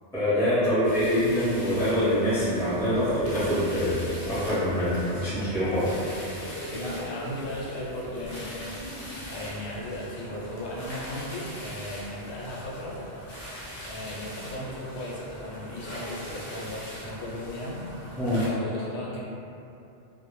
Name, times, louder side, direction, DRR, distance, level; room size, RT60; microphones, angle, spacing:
voice 1, 0.1-6.0 18.2-18.4, equal, 5° left, -14 dB, 0.7 m, -25 dB
sound 1, 0.8-18.5, equal, 50° left, 0.5 m, -40 dB
voice 2, 6.7-13.0 13.8-17.8 18.4-19.2, left 1 dB, 75° left, -6 dB, 0.8 m, -36 dB
2.1 x 2.0 x 3.0 m, 2.8 s
omnidirectional pair, 1.2 m